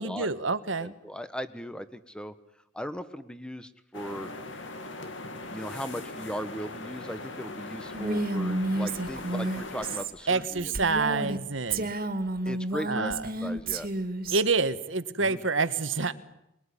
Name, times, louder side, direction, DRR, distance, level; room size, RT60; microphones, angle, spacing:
voice 1, 0.0-0.9 10.3-11.9 12.9-13.2 14.3-16.1, right 4 dB, 85° right, 11 dB, 1.6 m, -27 dB
voice 2, 0.8-2.3 2.7-4.3 5.5-10.8 12.4-13.1 13.4-13.9 15.2-15.4, equal, 5° left, 12 dB, 1.3 m, -38 dB
sound 1, 3.9-10.0, left 2 dB, 75° left, 2.5 m, -40 dB
Female speech woman speaking, 7.9-11.4 11.7-14.4, right 2 dB, 50° right, 2.3 m, -31 dB
26.5 x 21.5 x 10.0 m, 0.84 s
head